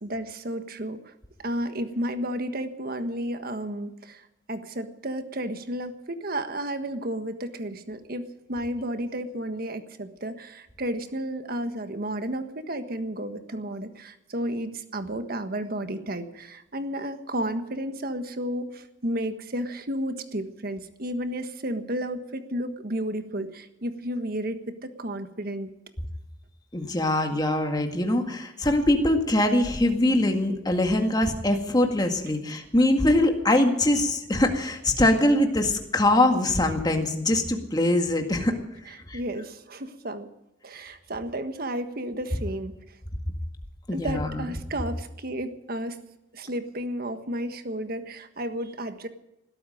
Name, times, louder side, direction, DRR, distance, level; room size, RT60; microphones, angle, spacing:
voice 1, 0.0-1.1 1.4-25.7 38.8-40.3 40.6-42.7 43.9-46.0 46.3-49.1, right 1 dB, 55° right, 9 dB, 1.5 m, -32 dB
voice 2, 26.7-38.6 39.1-39.2 43.9-44.5, left 1 dB, 20° left, 4 dB, 2.0 m, -23 dB
21.0 x 13.0 x 5.1 m, 0.90 s
head